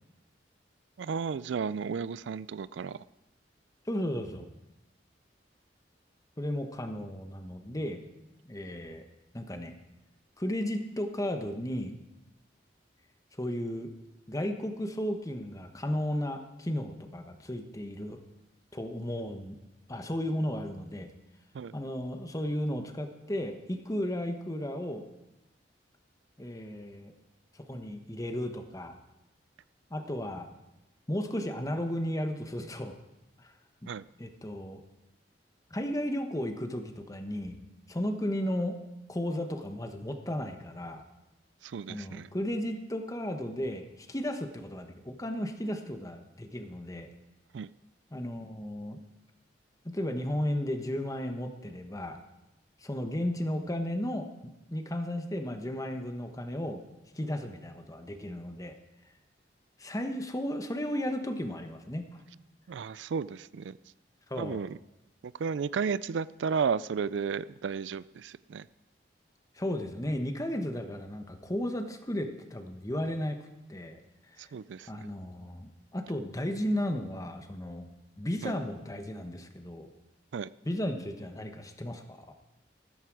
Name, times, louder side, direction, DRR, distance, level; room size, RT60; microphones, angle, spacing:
voice 1, 1.0-3.0 21.5-21.7 33.9-34.0 41.6-42.3 47.5-47.7 62.7-63.8 64.4-64.8 65.2-68.7 74.4-74.9 78.4-78.5 80.3-80.5, right 6 dB, 80° right, 18 dB, 0.4 m, -33 dB
voice 2, 3.9-4.4 6.4-8.0 8.5-9.0 9.3-9.7 10.4-12.0 13.4-13.9 14.3-18.2 18.7-19.6 19.9-21.1 21.7-25.0 26.4-27.1 27.7-28.9 29.9-30.5 31.1-32.9 33.4-33.5 33.8-33.9 34.2-34.8 35.7-37.6 37.9-38.8 39.1-41.0 41.9-47.1 48.1-49.0 49.8-52.2 52.8-56.8 57.1-58.7 59.8-62.1 64.3-64.6 69.6-73.4 73.7-74.0 74.3-74.4 74.9-77.9 78.2-79.9 80.6-82.3, left 1 dB, 20° left, 6 dB, 1.2 m, -34 dB
14.0 x 14.0 x 4.8 m, 0.96 s
head